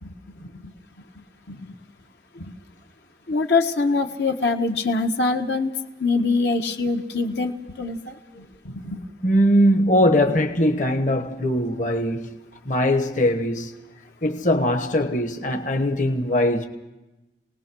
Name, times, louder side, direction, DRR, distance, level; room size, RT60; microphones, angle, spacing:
voice 1, 0.0-0.7 1.1-1.7 2.3-2.5 3.3-5.7 6.0-9.0, left 3 dB, 70° left, 1.5 m, -25 dB
voice 2, 9.2-12.4 12.6-13.7 14.2-16.7, equal, 45° left, 1.3 m, -21 dB
28.5 x 19.0 x 6.3 m
head